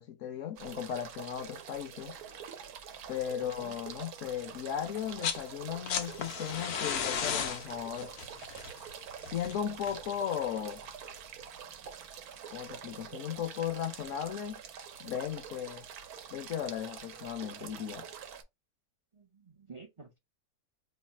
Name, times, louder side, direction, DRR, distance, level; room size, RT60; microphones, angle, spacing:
voice 1, 0.0-2.1 3.1-8.1 9.3-10.8 12.5-14.6 15.0-15.9 16.3-18.0, left 9 dB, 65° left, 0.9 m, -36 dB
sound 1, 0.6-18.4, right 7 dB, 85° right, 1.2 m, -46 dB
voice 2, 3.4-3.8 19.1-20.2, right 4 dB, 45° right, 0.4 m, -51 dB
sound 2, 5.0-5.5 5.7-10.6 11.8-11.9, left 7 dB, 90° left, 1.2 m, -35 dB
3.2 x 2.3 x 4.2 m
omnidirectional pair, 1.5 m